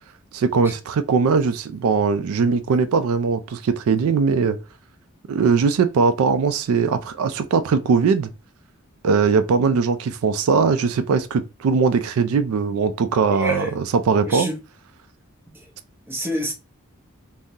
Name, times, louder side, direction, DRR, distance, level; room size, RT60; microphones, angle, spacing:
voice 1, 0.3-4.6 5.3-8.3 9.0-14.5, right 5 dB, 75° right, 0.3 m, -20 dB
voice 2, 13.3-13.7 14.3-14.5 16.1-16.5, right 1 dB, 10° right, 0.6 m, -26 dB
3.6 x 2.0 x 2.6 m
head